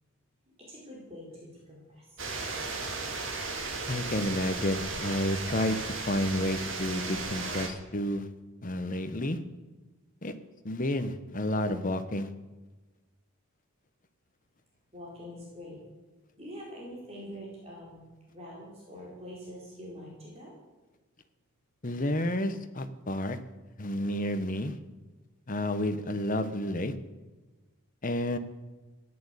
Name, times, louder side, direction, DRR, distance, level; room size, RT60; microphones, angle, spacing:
voice 1, 0.5-2.5 14.9-15.8 16.4-20.5, equal, 25° right, -4 dB, 4.4 m, -45 dB
sound 1, 2.2-7.7, right 3 dB, 55° right, 2.8 m, -35 dB
voice 2, 3.9-5.8 6.1-8.3 8.6-9.4 10.2-10.3 10.6-12.3 21.8-23.4 23.8-24.8 25.5-26.9 28.0-28.4, left 1 dB, 35° left, 9 dB, 1.1 m, -30 dB
14.0 x 11.0 x 8.3 m, 1.2 s
head